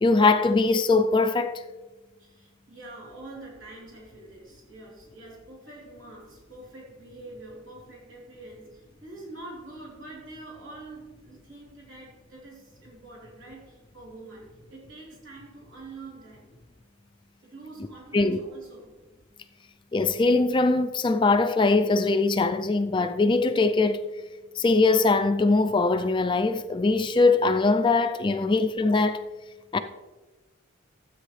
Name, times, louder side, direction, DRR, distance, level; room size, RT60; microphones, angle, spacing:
voice 1, 0.0-1.6 18.1-18.4 19.9-24.0 24.6-29.2 29.7-29.8, left 3 dB, 25° left, 0.3 m, -22 dB
voice 2, 2.2-16.5 17.4-19.0, right 2 dB, 70° right, 3.3 m, -45 dB
13.0 x 8.4 x 3.2 m
head